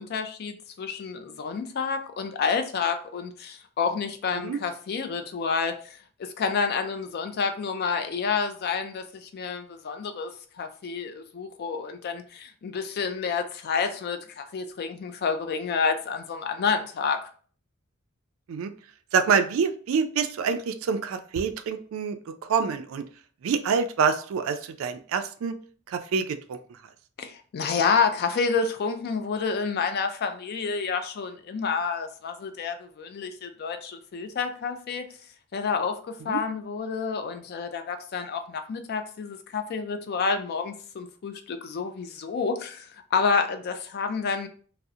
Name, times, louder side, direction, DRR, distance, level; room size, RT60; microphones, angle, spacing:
voice 1, 0.0-17.3 27.2-35.0 35.5-44.5, left 5 dB, 50° left, 7 dB, 0.3 m, -29 dB
voice 2, 19.1-22.2 22.5-23.0 23.4-25.5 25.9-26.6 36.3-36.4, right 6 dB, 75° right, 9 dB, 0.3 m, -26 dB
2.6 x 2.0 x 2.4 m, 0.43 s
head